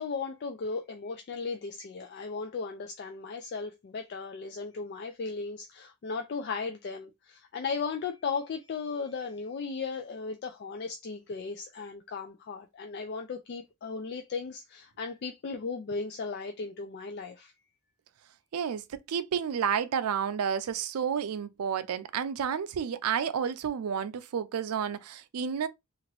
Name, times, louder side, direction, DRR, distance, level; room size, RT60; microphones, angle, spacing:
voice 1, 0.0-17.5, left 4 dB, 50° left, 0.3 m, -36 dB
voice 2, 18.5-25.7, right 7 dB, 85° right, 0.4 m, -31 dB
2.9 x 2.4 x 3.0 m
head